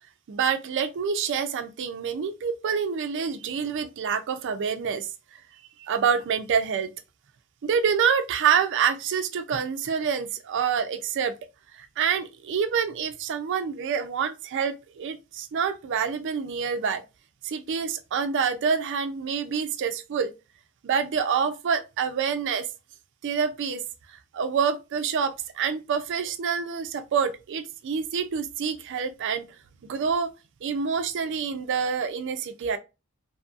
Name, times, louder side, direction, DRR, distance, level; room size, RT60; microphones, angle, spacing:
voice 1, 0.3-5.1 5.9-6.9 7.6-11.3 11.8-17.0 17.4-20.3 20.8-22.7 23.2-23.8 24.3-29.4 29.8-30.3 30.6-32.8, right 6 dB, 55° right, 0.4 m, -27 dB
2.6 x 2.6 x 2.4 m
head